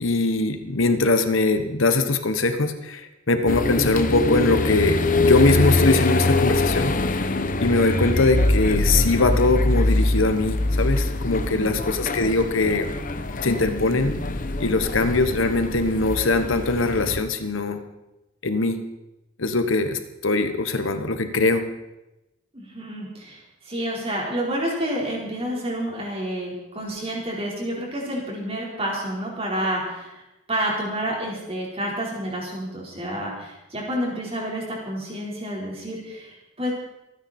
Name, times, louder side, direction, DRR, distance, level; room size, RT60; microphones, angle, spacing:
voice 1, 0.0-7.2 7.6-12.9 13.4-14.2 14.6-17.8 18.4-18.8 19.4-21.7, left 3 dB, 75° left, 8 dB, 1.2 m, -22 dB
sound 1, 3.5-17.2, left 2 dB, 40° left, 0.9 m, -23 dB
voice 2, 11.3-11.7 22.5-30.2 30.5-36.7, right 1 dB, 30° right, -3 dB, 4.5 m, -29 dB
26.5 x 9.5 x 4.4 m, 0.97 s
head